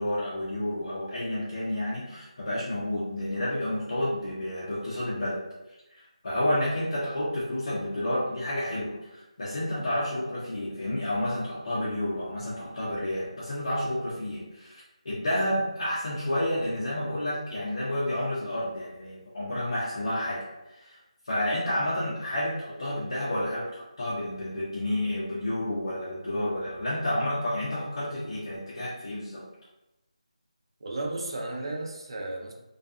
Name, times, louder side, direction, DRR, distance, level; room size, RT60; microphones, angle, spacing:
voice 1, 0.0-5.4 6.2-21.0 21.2-29.4, left 1 dB, 40° left, -9 dB, 0.5 m, -30 dB
voice 2, 30.8-32.5, right 2 dB, 40° right, 1 dB, 0.5 m, -34 dB
2.5 x 2.3 x 2.3 m, 0.97 s
figure-of-eight pair, 175°, 4 cm